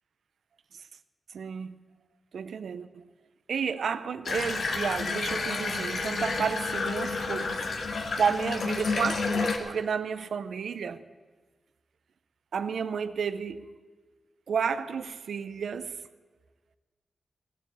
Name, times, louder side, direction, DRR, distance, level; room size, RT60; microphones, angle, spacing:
voice 1, 1.3-1.7 2.3-3.1 3.5-7.7 8.2-11.0 12.5-13.7 14.5-16.0, right 6 dB, 85° right, 0.6 m, -31 dB
Water tap faucet / Bathtub (filling or washing), 4.3-9.6, left 4 dB, 65° left, 1.5 m, -30 dB
17.0 x 7.5 x 8.5 m
wide cardioid pair, 120°, 0 cm